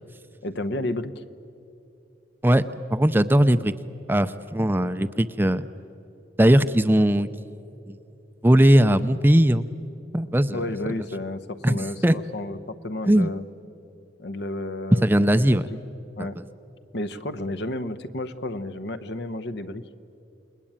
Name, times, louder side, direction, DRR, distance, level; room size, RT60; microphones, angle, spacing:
voice 1, 0.4-1.2 10.5-13.4 14.2-15.6 16.2-16.4 16.9-19.8, left 1 dB, 65° left, 11 dB, 1.0 m, -32 dB
voice 2, 2.9-3.7 4.1-5.7 6.4-7.6 7.9-8.0 8.4-9.7 10.1-10.6 11.6-12.2 13.1-13.3 15.0-15.7 16.2-16.3, right 1 dB, 10° right, 11 dB, 0.5 m, -19 dB
29.0 x 21.0 x 8.9 m, 2.8 s
head